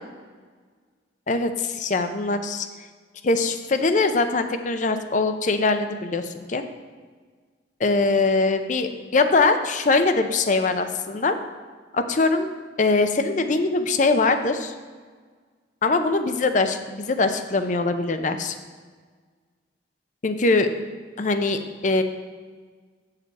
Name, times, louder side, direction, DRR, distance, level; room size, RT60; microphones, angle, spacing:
voice 1, 1.3-2.7 3.2-6.6 7.8-11.4 11.9-12.5 12.8-14.7 15.8-18.5 20.2-20.7 21.2-22.0, left 3 dB, 45° left, 8 dB, 0.5 m, -22 dB
8.5 x 6.6 x 4.1 m, 1.6 s
head